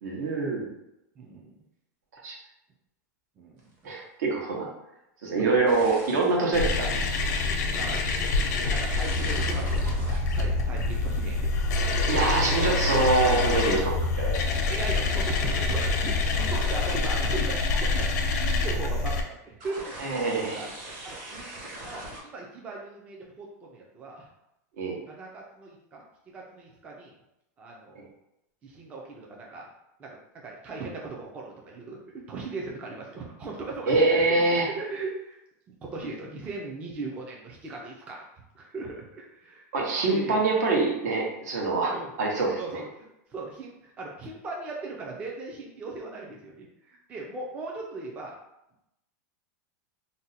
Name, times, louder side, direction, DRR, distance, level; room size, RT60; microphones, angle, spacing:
voice 1, 0.0-0.7 2.2-2.4 3.8-4.7 5.2-7.0 12.1-14.4 20.0-20.7 24.8-25.0 33.9-34.7 39.7-42.6, right 3 dB, 75° right, -1 dB, 1.0 m, -25 dB
voice 2, 1.2-1.5 3.4-3.7 7.7-8.1 8.7-9.9 10.3-11.5 14.7-20.0 20.6-20.7 21.0-24.3 25.0-27.1 27.6-28.1 28.6-29.7 30.0-34.2 34.6-35.4 35.8-38.2 38.5-39.7 40.1-40.4 41.9-42.1 42.6-48.4, right 3 dB, 15° right, -2 dB, 0.3 m, -38 dB
sound 1, 3.6-3.8 5.5-6.4 7.1-7.4 8.8-11.8 12.9-14.0 14.3-14.9 16.4-17.4 17.9-18.4 19.6-22.2, right 1 dB, 40° right, 0.9 m, -42 dB
sound 2, 6.5-19.2, left 3 dB, 75° left, 0.5 m, -26 dB
2.6 x 2.1 x 4.0 m, 0.85 s
supercardioid pair, 170°, 9 cm